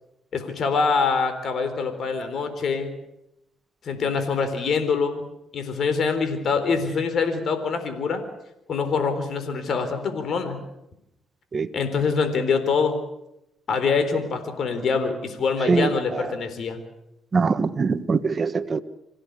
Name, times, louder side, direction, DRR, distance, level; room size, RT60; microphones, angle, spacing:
voice 1, 0.3-2.9 3.8-5.2 5.5-8.2 8.7-10.6 11.7-13.0 13.7-16.8, left 5 dB, 60° left, 4.0 m, -24 dB
voice 2, 15.7-16.3 17.3-18.8, right 4 dB, 35° right, 1.4 m, -23 dB
26.5 x 16.0 x 8.3 m
cardioid pair, 90°, 0 cm